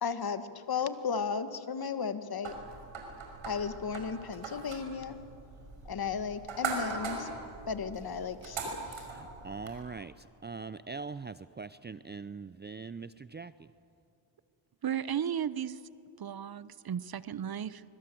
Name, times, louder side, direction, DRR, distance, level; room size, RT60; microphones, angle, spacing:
voice 1, 0.0-2.5 3.4-5.2 5.9-7.3 7.7-8.6 8.9-9.0, left 6 dB, 50° left, 11 dB, 1.6 m, -34 dB
sound 1, 2.4-9.8, right 4 dB, 85° right, 5.5 m, -40 dB
voice 2, 9.1-13.7, right 4 dB, 20° right, 14 dB, 0.5 m, -42 dB
voice 3, 14.8-15.8 16.2-17.8, right 9 dB, 50° right, 16 dB, 0.9 m, -34 dB
25.0 x 23.5 x 7.8 m, 2.6 s
cardioid pair, 75°, 47 cm